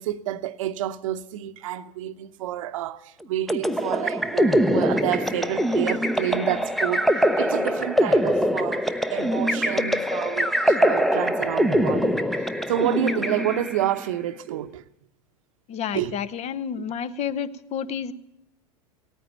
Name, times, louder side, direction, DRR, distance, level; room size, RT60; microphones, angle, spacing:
voice 1, 0.0-14.8 15.9-16.2, right 12 dB, 70° right, 0.9 m, -29 dB
sound 1, 3.5-13.9, equal, ahead, 0.7 m, -23 dB
voice 2, 15.7-18.1, left 8 dB, 40° left, 1.0 m, -30 dB
17.5 x 9.2 x 9.0 m
hypercardioid pair, 90°, 18 cm